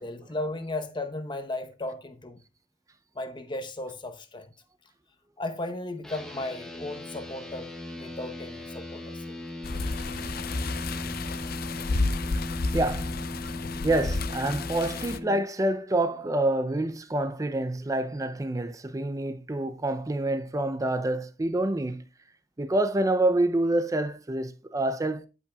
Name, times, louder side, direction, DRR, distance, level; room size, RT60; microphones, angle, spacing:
voice 1, 0.0-2.4 3.1-4.5 5.4-7.7 8.0-9.2, left 2 dB, 25° left, 0.9 m, -35 dB
sound 1, 6.0-15.4, left 1 dB, 5° left, 1.1 m, -38 dB
sound 2, 9.6-15.2, left 3 dB, 55° left, 0.6 m, -31 dB
voice 2, 12.7-13.1 13.8-22.0 22.6-25.3, right 1 dB, 20° right, 0.5 m, -27 dB
13.5 x 5.5 x 2.3 m
head